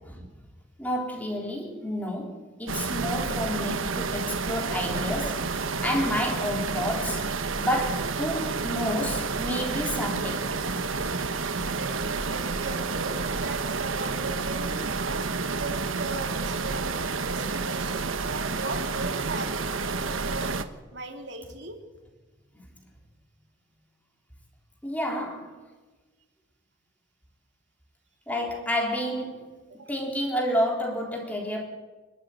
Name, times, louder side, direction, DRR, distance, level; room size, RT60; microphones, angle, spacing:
voice 1, 0.8-7.3 7.6-10.5 24.8-25.6 28.3-31.6, equal, 10° left, 0 dB, 3.7 m, -30 dB
sound 1, 2.7-20.6, right 4 dB, 90° right, 1.2 m, -30 dB
voice 2, 11.7-16.9 17.3-20.6 20.9-21.8 29.7-29.9, right 2 dB, 60° right, 4 dB, 3.0 m, -38 dB
26.5 x 12.5 x 9.2 m, 1.2 s
head